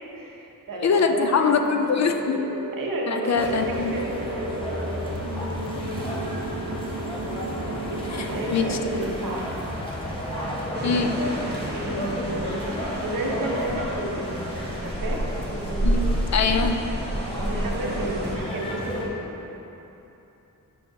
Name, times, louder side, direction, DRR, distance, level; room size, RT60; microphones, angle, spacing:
voice 1, 0.1-2.2 2.8-5.1 7.7-9.5 11.7-12.6 13.0-14.4 14.8-15.2 17.4-19.3, right 1 dB, 80° right, -2 dB, 1.0 m, -32 dB
voice 2, 0.8-2.5 3.1-3.9 8.1-8.3 8.5-8.8 10.8-11.3 15.8-16.8, left 5 dB, 55° left, 5 dB, 0.4 m, -23 dB
sound 1, 1.2-9.2, right 2 dB, 60° right, 0.5 m, -35 dB
sound 2, 3.3-19.1, equal, 15° left, 0.9 m, -32 dB
sound 3, 10.7-18.4, right 1 dB, 30° right, 0.8 m, -30 dB
9.3 x 5.5 x 2.7 m, 3.0 s
wide cardioid pair, 180°, 33 cm